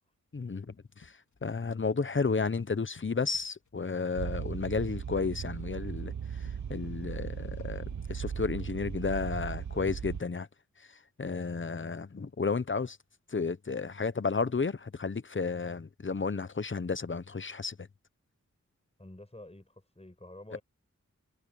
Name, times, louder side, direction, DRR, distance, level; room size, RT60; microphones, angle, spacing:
voice 1, 0.3-1.1 1.4-6.1 6.4-10.5 11.2-13.0 13.3-17.7 20.5-20.6, left 4 dB, 40° left, 0.9 m, -32 dB
sound 1, 0.7-2.3 2.6-3.9 4.1-8.5, left 4 dB, 75° left, 4.0 m, -56 dB
sound 2, 4.2-10.2, right 7 dB, 75° right, 0.9 m, -37 dB
voice 2, 19.0-20.6, left 1 dB, 20° left, 7.7 m, -49 dB
wide cardioid pair, 60°, 30 cm